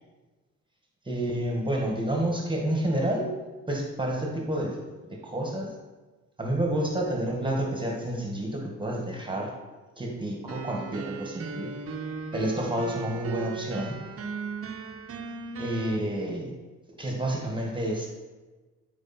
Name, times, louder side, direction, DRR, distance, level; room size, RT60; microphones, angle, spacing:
voice 1, 1.1-3.3 3.7-4.8 5.3-5.7 6.4-9.5 10.0-11.7 12.3-13.9 15.6-16.5 17.0-18.1, right 1 dB, 15° right, 0 dB, 1.8 m, -29 dB
sound 1, 10.5-16.0, right 5 dB, 50° right, 0.9 m, -37 dB
13.0 x 5.1 x 4.4 m, 1.3 s
cardioid pair, 90°, 30 cm